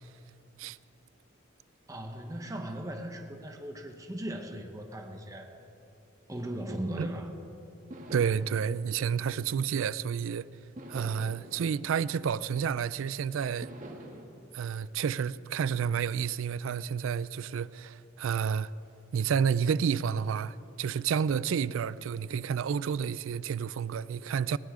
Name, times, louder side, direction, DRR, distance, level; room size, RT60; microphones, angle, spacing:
voice 1, 1.9-5.5 6.3-7.3, right 1 dB, 15° right, 1.0 m, -38 dB
sound 1, 7.9-10.2 10.8-13.0 13.6-14.2, right 1 dB, 40° right, 1.4 m, -47 dB
voice 2, 8.1-10.5 10.9-13.7 14.5-18.7 19.1-24.6, right 7 dB, 90° right, 0.4 m, -30 dB
20.0 x 17.0 x 3.7 m
head